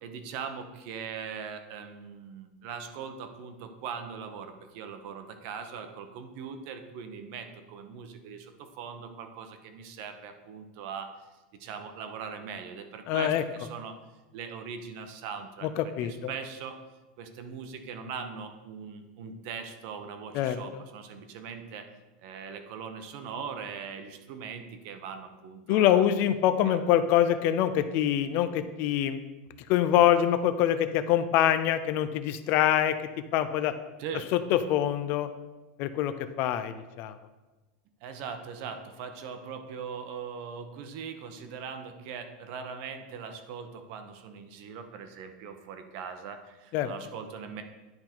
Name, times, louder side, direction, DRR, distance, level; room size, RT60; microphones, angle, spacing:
voice 1, 0.0-11.1 11.6-14.0 14.3-16.8 17.2-21.9 22.2-26.1 26.6-26.8 34.0-34.3 38.0-47.6, right 6 dB, 50° right, 7 dB, 0.8 m, -40 dB
voice 2, 13.1-13.4 15.8-16.1 20.3-20.6 25.7-29.2 29.7-33.0 33.3-33.7 34.3-35.3 35.8-37.2 46.7-46.9, left 11 dB, 45° left, 11 dB, 0.4 m, -25 dB
10.5 x 3.8 x 4.4 m, 1.2 s
supercardioid pair, 150°, 5 cm